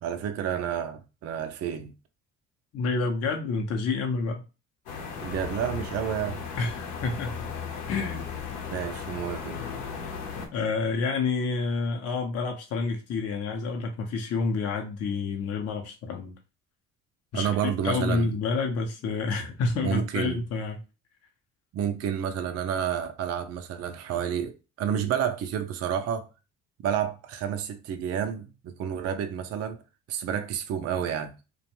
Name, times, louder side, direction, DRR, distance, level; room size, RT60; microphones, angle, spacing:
voice 1, 0.0-1.9 5.2-6.4 8.7-9.6 17.3-18.3 19.7-20.4 21.7-26.3 26.8-29.8 30.1-31.3, right 9 dB, 45° right, 0.5 m, -30 dB
voice 2, 2.7-4.4 6.6-7.4 7.9-8.2 10.5-16.3 17.3-20.8, left 4 dB, 45° left, 0.6 m, -29 dB
sound 1, 4.9-10.5, left 6 dB, 85° left, 0.8 m, -36 dB
2.5 x 2.2 x 2.9 m
supercardioid pair, 65°, 35 cm